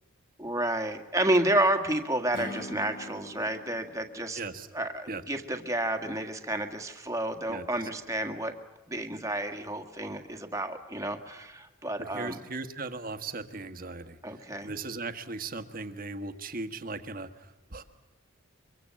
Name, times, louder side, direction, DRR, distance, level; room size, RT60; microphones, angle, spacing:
voice 1, 0.4-4.4 4.7-8.5 8.9-12.4 14.2-14.7, right 1 dB, 15° right, 6 dB, 1.8 m, -30 dB
Acoustic guitar / Strum, 2.3-5.6, left 2 dB, 45° left, 2.0 m, -45 dB
voice 2, 4.4-4.7 5.1-5.2 7.5-7.7 12.0-17.8, right 3 dB, 40° right, 8 dB, 1.5 m, -38 dB
24.5 x 23.5 x 7.6 m, 1.1 s
head